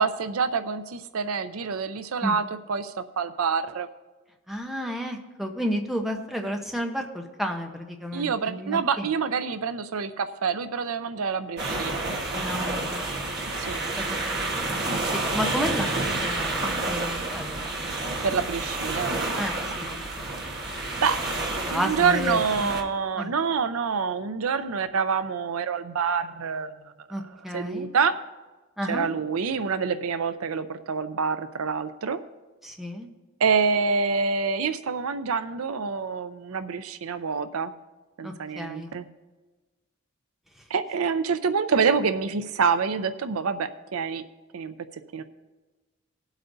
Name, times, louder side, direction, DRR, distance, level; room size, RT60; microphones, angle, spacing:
voice 1, 0.0-3.9 8.1-12.0 13.6-13.8 18.2-19.2 21.0-21.2 21.7-26.7 27.5-28.1 28.9-32.2 33.4-37.7 38.2-39.1 40.7-44.2 44.5-44.7 45.1-45.2, right 5 dB, 85° right, 11 dB, 0.5 m, -26 dB
voice 2, 4.5-9.1 12.3-13.1 13.8-17.7 19.4-20.2 21.7-22.7 23.2-23.3 27.1-27.9 28.8-29.1 32.6-33.1 38.2-38.9, equal, ahead, 2 dB, 0.8 m, -32 dB
sound 1, 11.6-22.8, right 2 dB, 50° right, 1.3 m, -29 dB
20.0 x 8.1 x 2.7 m, 1.2 s
head